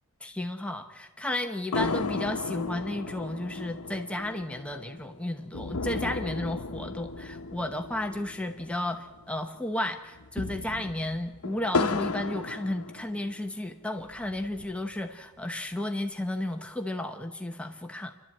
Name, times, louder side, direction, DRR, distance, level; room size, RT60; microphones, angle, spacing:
voice 1, 0.2-18.2, left 1 dB, 5° left, 4 dB, 0.9 m, -33 dB
sound 1, 1.7-9.3 9.6-9.7 10.1-13.5 14.0-15.0, left 4 dB, 80° left, 0.9 m, -34 dB
29.0 x 12.0 x 8.7 m, 1.2 s
head